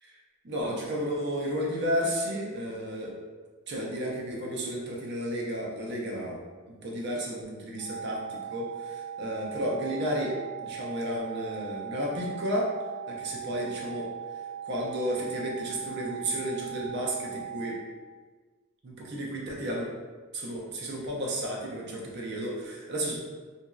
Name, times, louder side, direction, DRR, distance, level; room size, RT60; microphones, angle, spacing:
voice 1, 0.4-3.1 3.7-6.4 6.8-12.7 13.1-14.1 14.6-17.8 18.8-19.9 20.3-23.2, equal, 50° right, -2 dB, 0.6 m, -32 dB
sound 1, 7.8-17.8, right 9 dB, 75° left, 1.0 m, -39 dB
2.9 x 2.6 x 2.3 m, 1.4 s
head